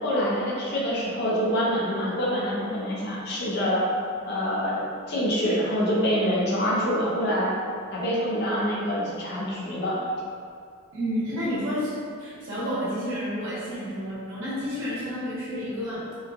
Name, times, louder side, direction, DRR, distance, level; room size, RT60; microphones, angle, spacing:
voice 1, 0.0-3.8 4.3-7.5 7.9-10.0, equal, 50° left, -5 dB, 0.5 m, -26 dB
voice 2, 10.9-16.0, equal, 65° right, -10 dB, 1.0 m, -30 dB
3.0 x 2.3 x 2.2 m, 2.2 s
head